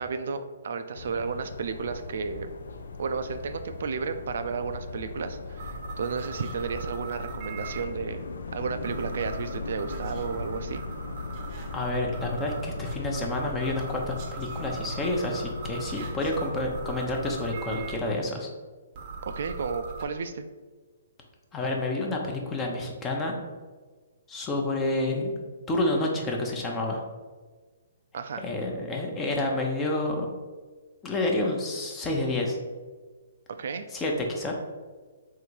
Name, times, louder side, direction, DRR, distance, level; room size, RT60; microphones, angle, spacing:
voice 1, 0.0-2.5 3.0-10.8 19.2-20.5 28.1-28.5 33.5-33.9, right 5 dB, 65° right, 8 dB, 0.3 m, -33 dB
sound 1, 1.0-16.9, left 4 dB, 75° left, 0.4 m, -39 dB
sound 2, 5.6-7.8 8.8-18.0 18.9-20.0, right 3 dB, 35° right, 0.7 m, -40 dB
voice 2, 11.7-18.5 21.5-23.4 24.3-25.3 25.7-27.0 28.4-30.3 31.0-32.6 33.9-34.5, left 2 dB, 15° left, 1 dB, 0.7 m, -29 dB
3.7 x 2.6 x 4.5 m, 1.4 s
hypercardioid pair, 145°, 0 cm